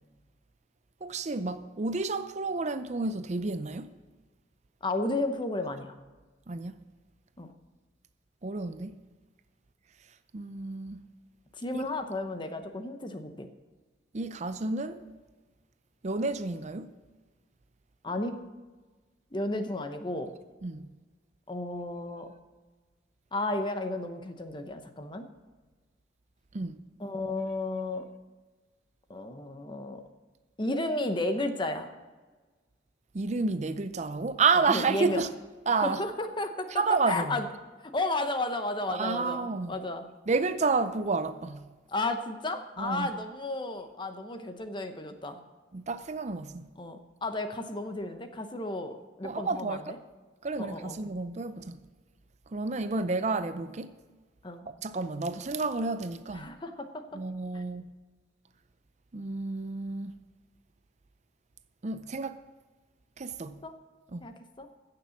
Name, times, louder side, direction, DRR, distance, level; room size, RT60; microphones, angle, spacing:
voice 1, 1.0-3.9 6.5-6.8 8.4-9.0 10.3-11.0 11.7-11.8 14.1-15.0 16.0-16.9 20.6-20.9 26.5-26.8 33.1-35.3 35.7-36.0 36.7-37.4 38.9-39.8 40.3-41.7 42.8-43.1 45.7-46.6 49.2-50.0 50.4-51.8 52.5-53.9 54.7-56.5 57.1-57.8 59.1-60.1 61.8-62.4 63.2-63.6 64.1-64.2, right 4 dB, 40° right, 0.5 m, -30 dB
voice 2, 4.8-5.9 7.4-7.5 11.6-13.5 18.0-18.4 19.3-20.3 21.5-22.3 23.3-25.3 27.0-28.1 29.1-30.0 30.6-31.9 34.5-35.2 35.8-36.7 37.1-37.5 37.8-40.0 41.9-45.4 46.8-49.9 50.6-51.0 54.4-54.7 56.3-57.2 57.5-57.6 63.6-63.7 64.2-64.7, left 2 dB, 25° left, 0.9 m, -33 dB
15.5 x 6.8 x 7.1 m
head